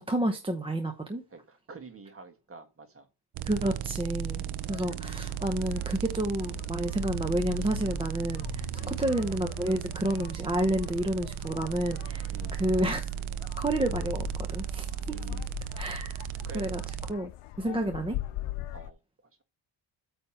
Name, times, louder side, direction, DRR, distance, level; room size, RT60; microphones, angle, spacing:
voice 1, 0.0-1.2 3.5-4.4 4.7-13.1 13.6-15.2 15.8-16.3 16.5-16.8 17.1-17.3 17.6-18.2, right 1 dB, 10° right, 0.8 m, -30 dB
voice 2, 1.0-3.1 4.4-4.6 8.8-9.0 12.3-12.7 15.1-15.5 16.4-16.7 17.7-18.0 18.7-19.0, right 3 dB, 25° right, 1.6 m, -48 dB
sound 1, 3.3-17.1, right 11 dB, 75° right, 0.8 m, -36 dB
sound 2, 4.6-18.9, left 15 dB, 85° left, 0.8 m, -42 dB
8.8 x 3.4 x 5.7 m
cardioid pair, 140°, 49 cm